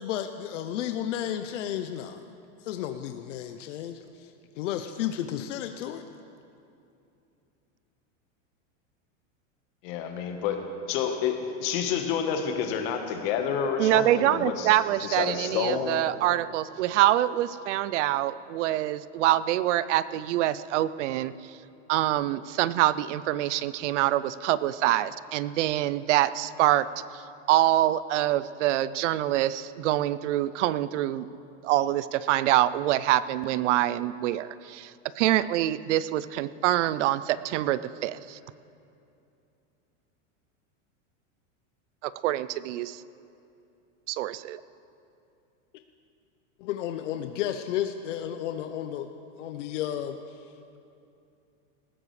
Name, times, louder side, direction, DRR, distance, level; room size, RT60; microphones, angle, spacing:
voice 1, 0.0-2.2 2.6-4.0 4.6-6.0 46.6-49.1 49.4-50.2, left 11 dB, 70° left, 8 dB, 0.7 m, -32 dB
voice 2, 9.8-14.8 15.0-16.2, left 7 dB, 45° left, 5 dB, 1.3 m, -29 dB
voice 3, 13.8-21.3 21.9-26.9 27.1-27.2 27.5-31.3 31.6-34.9 35.2-38.4 42.0-43.0 44.1-44.6, right 14 dB, 70° right, 17 dB, 0.6 m, -25 dB
19.0 x 15.0 x 3.3 m, 2.7 s
supercardioid pair, 165°, 38 cm